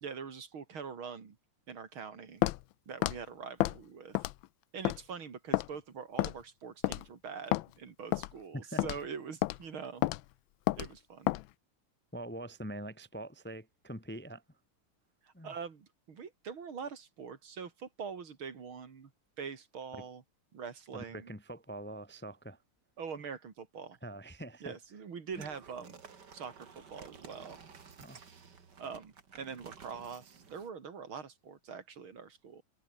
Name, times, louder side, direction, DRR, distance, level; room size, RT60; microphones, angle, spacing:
voice 1, 0.0-1.4 1.7-2.4 2.9-4.3 4.7-10.0 10.8-11.3 15.2-19.1 19.4-20.2 20.5-21.3 23.0-24.0 24.6-26.0 26.3-27.6 28.8-32.6, right 6 dB, 75° right, 3.3 m, -44 dB
Walk footsteps, 2.4-2.6 3.0-3.2 3.6-3.8 4.2-4.5 4.9-5.0 5.5-5.7 6.2-6.4 6.8-7.0 7.5-7.7 8.1-8.3 8.8-9.0 9.4-9.6 10.0-10.2 10.7-10.9 11.3-11.4, left 16 dB, 75° left, 1.3 m, -30 dB
voice 2, 12.1-14.4 15.3-15.5 19.9-20.0 20.9-22.6 24.0-24.8 25.4-25.5 28.0-28.2, right 1 dB, 5° left, 1.0 m, -44 dB
sound 1, 25.3-30.7, right 6 dB, 55° right, 2.8 m, -53 dB
omnidirectional pair, 2.3 m